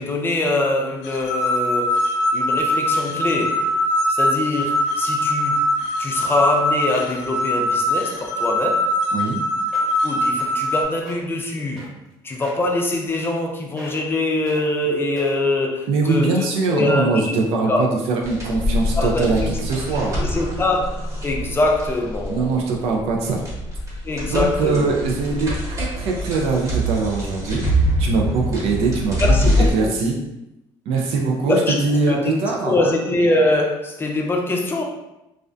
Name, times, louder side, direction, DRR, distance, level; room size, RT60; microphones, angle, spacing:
voice 1, 0.0-3.7 4.1-5.7 6.0-8.9 10.0-11.9 12.2-17.4 17.7-17.9 19.0-19.6 20.2-20.8 21.2-22.5 24.0-25.0 29.2-29.9 31.4-31.7 32.1-32.3 32.6-34.8, left 2 dB, 20° left, 0 dB, 0.4 m, -23 dB
sound 1, 1.0-10.8, left 1 dB, 85° left, 0.4 m, -22 dB
sound 2, 9.4-9.5 9.7-10.0 10.4-10.7 11.0-11.2 11.8-12.1 12.4-12.7 13.1-13.5 13.8-14.1 14.5-14.6 15.2-15.5 16.1-16.2, left 1 dB, 5° left, 0.9 m, -40 dB
voice 2, 15.9-20.2 22.3-23.4 24.3-25.5 25.8-27.6 28.0-30.2 30.9-32.7, right 3 dB, 80° right, 0 dB, 0.4 m, -22 dB
sound 3, 18.2-29.7, equal, 30° right, 0.9 m, -24 dB
2.4 x 2.1 x 2.5 m, 0.92 s
cardioid pair, 105°, 10 cm